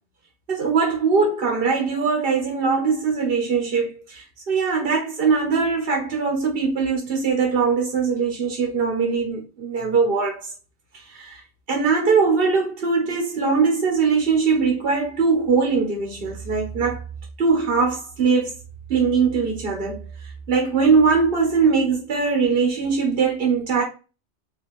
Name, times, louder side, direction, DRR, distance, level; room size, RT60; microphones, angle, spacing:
voice 1, 0.5-10.5 10.9-11.4 11.7-17.0 17.4-18.6 18.9-20.0 20.5-23.8, right 5 dB, 55° right, 1.2 m, -21 dB
4.3 x 2.9 x 3.0 m
omnidirectional pair, 1.2 m